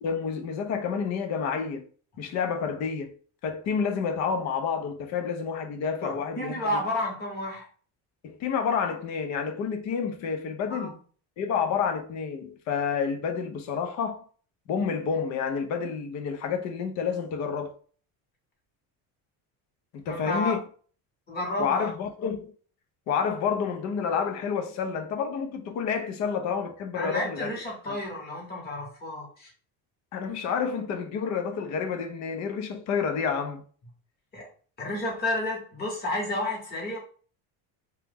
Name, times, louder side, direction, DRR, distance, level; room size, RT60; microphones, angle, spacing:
voice 1, 0.0-1.9 2.2-3.2 3.4-6.7 8.2-10.9 11.4-14.3 14.7-17.7 19.9-20.6 21.6-22.5 23.1-27.5 27.9-28.0 30.1-33.6, left 6 dB, 45° left, 0.5 m, -29 dB
voice 2, 6.0-7.7 10.7-11.0 20.1-20.6 21.3-21.9 26.9-29.5 34.3-34.5 34.8-37.0, left 1 dB, 25° left, 1.0 m, -31 dB
2.9 x 2.3 x 3.4 m
cardioid pair, 175°, 41 cm